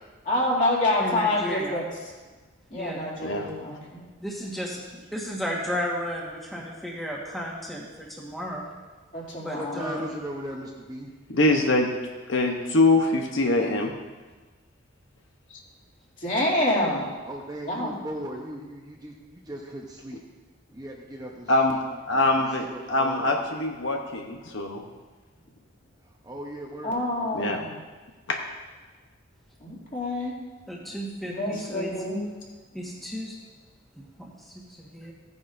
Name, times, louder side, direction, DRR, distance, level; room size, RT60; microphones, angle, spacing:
voice 1, 0.2-1.8 2.7-4.0 9.1-9.9 16.2-17.1 17.6-18.0 26.8-27.7 29.6-30.3 31.2-32.2, left 1 dB, 40° left, -5 dB, 2.6 m, -27 dB
voice 2, 1.0-1.7 2.7-3.0 4.2-8.7 9.4-10.1 30.7-31.9 32.7-33.3 34.0-35.1, equal, ahead, -4 dB, 1.4 m, -34 dB
voice 3, 9.6-11.1 17.2-20.2 20.7-21.5 22.1-23.5 26.2-27.6, equal, 20° right, 0 dB, 0.8 m, -38 dB
voice 4, 11.3-11.9 12.3-13.9 21.5-21.8 22.1-24.8 27.3-27.6 28.3-28.4, left 2 dB, 65° left, 2 dB, 0.9 m, -23 dB
15.5 x 9.7 x 2.6 m, 1.3 s
head